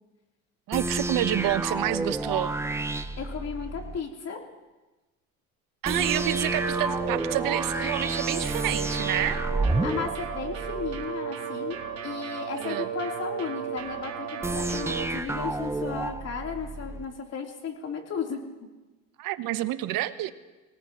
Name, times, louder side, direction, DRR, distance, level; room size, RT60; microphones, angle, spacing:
sound 1, 0.7-4.0 5.8-11.1 14.4-17.1, right 2 dB, 5° right, 0.7 m, -30 dB
voice 1, 0.7-2.5 5.8-9.4 12.6-12.9 19.2-20.3, right 14 dB, 55° right, 12 dB, 1.1 m, -28 dB
voice 2, 3.2-4.4 5.9-6.1 9.8-18.5, left 6 dB, 40° left, 0 dB, 3.7 m, -35 dB
sound 2, 6.0-15.0, right 8 dB, 40° right, 3.1 m, -35 dB
25.0 x 18.0 x 3.1 m, 1.1 s
supercardioid pair, 85°, 39 cm